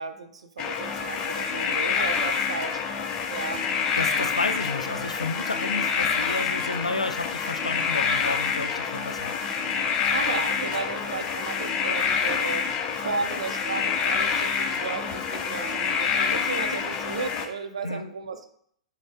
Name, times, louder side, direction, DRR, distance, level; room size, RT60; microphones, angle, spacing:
voice 1, 0.0-2.8 3.3-3.7 10.1-12.7 13.0-18.5, right 4 dB, 65° right, 8 dB, 0.5 m, -34 dB
sound 1, 0.6-17.5, left 6 dB, 25° left, 0.5 m, -27 dB
voice 2, 4.0-9.3 17.8-18.1, left 3 dB, 80° left, 9 dB, 0.4 m, -31 dB
6.1 x 2.1 x 3.5 m, 0.66 s
figure-of-eight pair, 105°, 3 cm